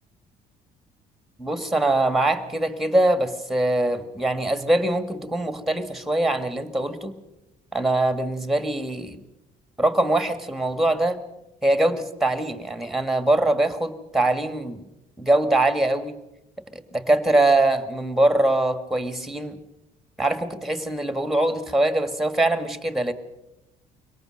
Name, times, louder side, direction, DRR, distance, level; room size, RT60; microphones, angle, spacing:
voice 1, 1.4-7.1 7.7-9.2 9.8-11.2 11.6-14.9 15.2-16.2 16.7-19.6 20.2-23.1, right 2 dB, ahead, 10 dB, 1.8 m, -23 dB
23.5 x 18.0 x 6.5 m, 0.93 s
cardioid pair, 110°, 17 cm